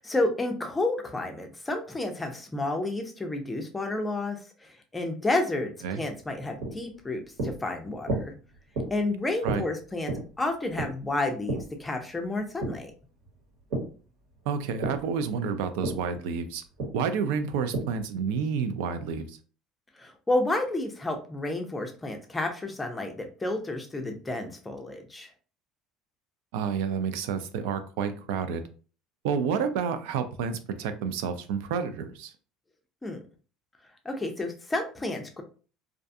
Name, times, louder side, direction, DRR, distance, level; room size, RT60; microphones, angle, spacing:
voice 1, 0.0-8.3 8.9-12.9 20.0-25.3 33.0-33.2 34.1-35.4, left 2 dB, 10° left, 4 dB, 0.4 m, -31 dB
sound 1, 6.2-14.0 14.3-18.1, right 2 dB, 70° right, 1.3 m, -35 dB
voice 2, 14.5-16.6 16.9-19.4 26.5-28.6 29.2-32.3, right 6 dB, 85° right, 9 dB, 0.3 m, -29 dB
2.4 x 2.3 x 2.6 m, 0.37 s
cardioid pair, 165°, 0 cm